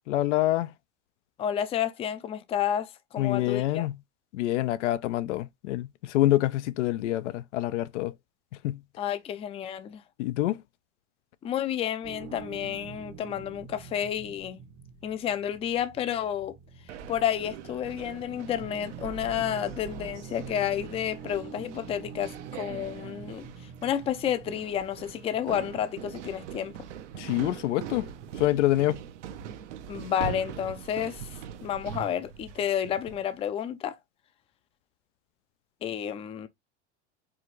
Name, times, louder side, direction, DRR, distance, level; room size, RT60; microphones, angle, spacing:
voice 1, 0.1-0.7 3.2-4.0 4.3-8.1 8.6-8.8 10.2-10.6 27.2-28.1 28.4-29.0, left 15 dB, 90° left, 0.5 m, -26 dB
voice 2, 1.4-3.9 9.0-10.0 11.4-14.6 15.0-16.6 17.1-23.5 23.8-26.7 29.9-31.3 31.6-34.0 35.8-36.5, left 10 dB, 15° left, 0.4 m, -30 dB
sound 1, 12.0-28.3, right 6 dB, 65° right, 1.1 m, -46 dB
sound 2, 16.9-33.4, right 9 dB, 85° right, 0.8 m, -42 dB
4.8 x 2.5 x 3.0 m
supercardioid pair, 130°, 35 cm